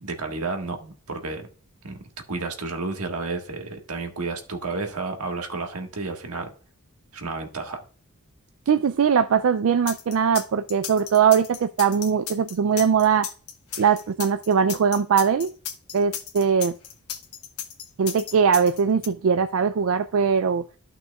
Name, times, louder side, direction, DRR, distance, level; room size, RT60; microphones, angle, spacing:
voice 1, 0.0-1.5 1.8-2.0 2.3-6.5 7.1-7.8, right 3 dB, 90° right, 4 dB, 1.6 m, -31 dB
voice 2, 8.7-13.3 13.8-15.5 15.9-16.7 18.0-20.6, right 6 dB, 65° right, 10 dB, 0.4 m, -21 dB
sound 1, 9.9-19.1, left 9 dB, 80° left, 1.2 m, -34 dB
14.0 x 5.9 x 2.4 m, 0.40 s
head